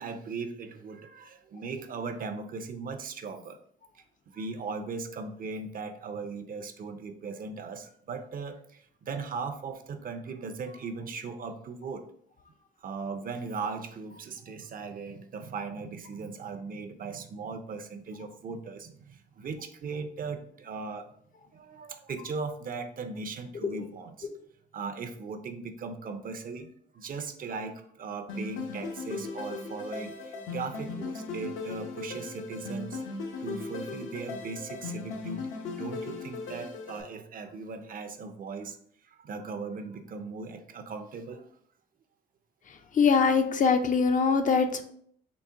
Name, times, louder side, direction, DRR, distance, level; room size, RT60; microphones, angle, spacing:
voice 1, 0.0-3.6 4.3-12.1 12.8-21.1 21.5-24.3 24.7-33.0 33.4-35.4 35.7-38.8 39.1-41.4, right 4 dB, 45° right, 7 dB, 0.5 m, -38 dB
sound 1, 28.3-37.0, left 3 dB, 75° left, 0.8 m, -38 dB
voice 2, 42.9-44.8, left 5 dB, 40° left, 7 dB, 0.4 m, -23 dB
3.9 x 2.1 x 3.5 m, 0.64 s
cardioid pair, 90°, 20 cm